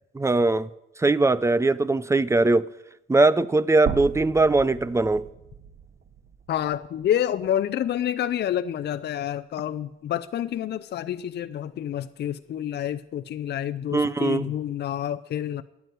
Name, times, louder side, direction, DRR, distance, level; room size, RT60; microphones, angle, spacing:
voice 1, 0.1-0.7 1.0-2.7 3.1-5.2 13.9-14.5, right 2 dB, 15° right, 0.6 m, -21 dB
sound 1, 3.9-8.0 8.4-8.5 9.9-10.0, right 7 dB, 45° right, 1.1 m, -38 dB
voice 2, 6.5-15.6, left 10 dB, 60° left, 0.6 m, -28 dB
12.0 x 9.5 x 9.3 m
cardioid pair, 90°, 20 cm